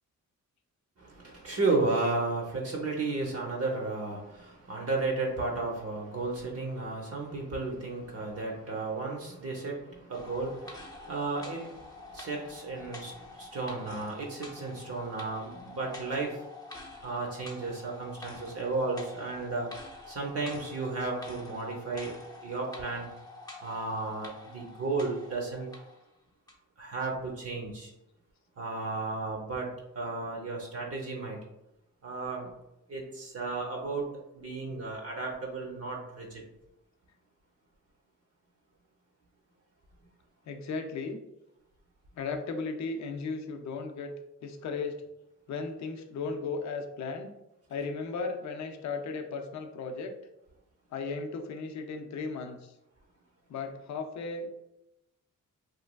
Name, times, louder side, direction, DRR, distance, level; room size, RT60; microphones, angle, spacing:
voice 1, 1.0-16.4 17.0-19.7 20.1-22.1 22.4-23.1 23.6-25.7 26.8-27.9 28.6-29.7 29.9-31.4 32.0-32.5 32.9-34.1 34.3-36.4, right 3 dB, 50° right, -1 dB, 0.7 m, -33 dB
sound 1, 10.1-26.0 26.5-26.6, left 2 dB, 10° left, 0.7 m, -47 dB
voice 2, 40.5-41.2 42.2-44.1 44.4-45.0 45.5-47.3 47.7-50.1 50.9-52.7 53.5-54.6, left 4 dB, 60° left, 4 dB, 0.5 m, -36 dB
3.0 x 2.3 x 2.2 m, 0.90 s
cardioid pair, 80°, 31 cm